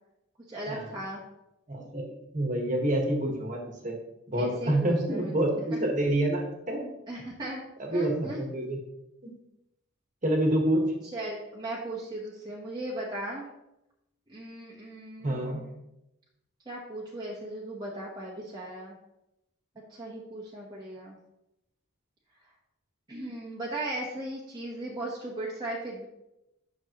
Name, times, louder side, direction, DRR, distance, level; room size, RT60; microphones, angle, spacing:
voice 1, 0.5-1.2 4.4-5.3 7.1-7.6 7.9-8.4 11.1-13.5 14.3-15.7 16.7-18.9 20.0-21.2 23.1-26.1, right 1 dB, 20° right, -5 dB, 1.1 m, -37 dB
voice 2, 1.7-3.9 4.3-6.8 7.8-8.8 9.2-9.3 10.2-10.8 15.2-15.6, right 1 dB, 35° right, 1 dB, 1.4 m, -27 dB
9.6 x 6.4 x 3.0 m, 0.89 s
head